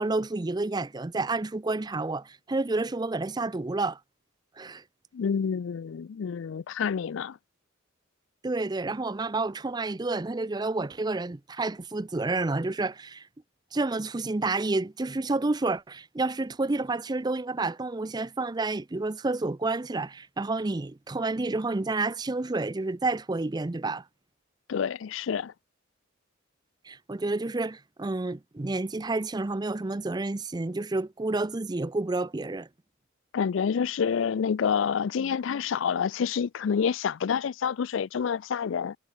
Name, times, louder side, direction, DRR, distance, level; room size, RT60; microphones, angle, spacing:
voice 1, 0.0-4.0 4.6-4.8 8.4-13.2 13.7-24.0 26.9-32.7, right 2 dB, 20° right, 0.5 m, -29 dB
voice 2, 5.1-7.4 24.7-25.5 33.3-39.0, left 7 dB, 70° left, 0.4 m, -28 dB
head